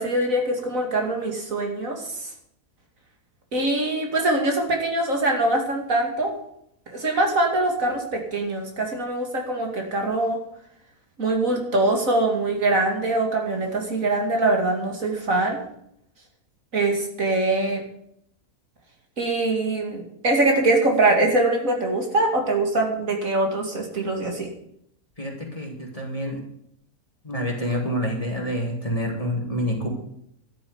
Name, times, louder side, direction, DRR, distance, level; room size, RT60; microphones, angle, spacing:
voice 1, 0.0-2.3 3.5-6.3 6.9-10.4 11.2-15.6 16.7-17.8 19.2-24.5, right 2 dB, 60° right, 2 dB, 2.9 m, -23 dB
voice 2, 25.2-26.4 27.2-30.0, equal, 25° left, 0 dB, 3.1 m, -27 dB
12.5 x 7.1 x 9.7 m, 0.72 s
omnidirectional pair, 1.6 m